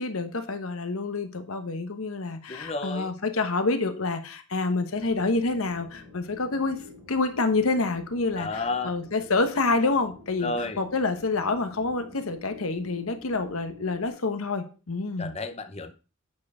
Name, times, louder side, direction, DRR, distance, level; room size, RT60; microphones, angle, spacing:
voice 1, 0.0-6.8 7.1-15.3, left 3 dB, 75° left, 1.1 m, -27 dB
voice 2, 2.5-3.2 8.4-8.9 10.4-10.8 15.2-15.9, left 3 dB, 30° left, 0.8 m, -32 dB
sound 1, 4.9-14.1, left 2 dB, 40° right, 3.3 m, -48 dB
8.4 x 4.4 x 4.9 m
head